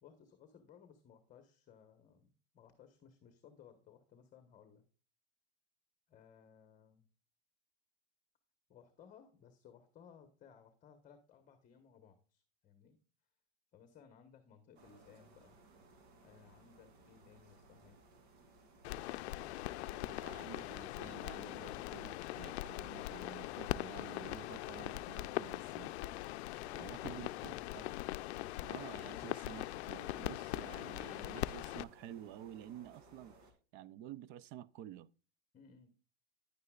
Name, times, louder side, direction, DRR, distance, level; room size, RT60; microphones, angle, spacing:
voice 1, 0.0-4.8 6.1-7.1 8.7-13.0 13.7-15.6 16.2-18.0 26.7-27.6 35.5-35.9, left 7 dB, 25° left, 1.1 m, -61 dB
sound 1, 14.7-33.5, right 3 dB, 75° right, 2.7 m, -63 dB
sound 2, 18.8-31.8, left 16 dB, 85° left, 0.5 m, -41 dB
voice 2, 19.8-25.9 26.7-28.0 28.7-33.4 33.7-35.1, right 11 dB, 35° right, 0.4 m, -51 dB
10.0 x 9.5 x 2.3 m
supercardioid pair, 150°, 32 cm